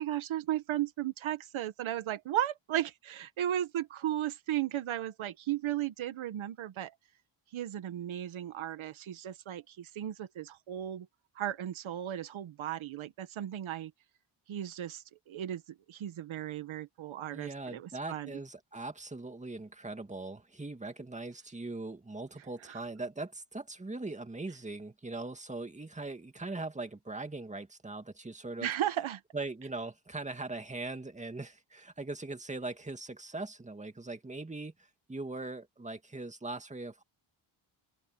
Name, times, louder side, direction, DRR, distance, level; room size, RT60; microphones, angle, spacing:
voice 1, 0.0-6.9 7.5-11.1 11.4-13.9 14.5-18.3 22.7-22.8 28.6-29.2, right 12 dB, 80° right, 1.8 m, -35 dB
voice 2, 17.3-28.7 29.3-37.0, right 2 dB, 15° right, 2.2 m, -40 dB
open air
cardioid pair, 85°, 47 cm